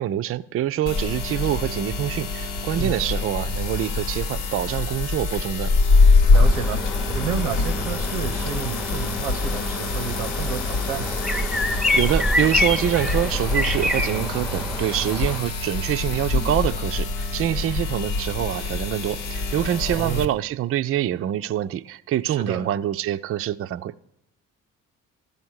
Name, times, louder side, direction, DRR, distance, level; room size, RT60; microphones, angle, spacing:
voice 1, 0.0-5.7 11.9-23.9, right 11 dB, 35° right, 0.4 m, -25 dB
sound 1, 0.9-20.3, left 3 dB, 65° left, 1.0 m, -24 dB
sound 2, 6.3-15.4, left 1 dB, ahead, 0.7 m, -27 dB
voice 2, 6.3-6.8 7.1-11.2 19.9-20.3 22.3-22.7, right 9 dB, 85° right, 0.7 m, -31 dB
13.0 x 5.3 x 6.2 m
hypercardioid pair, 45°, 41 cm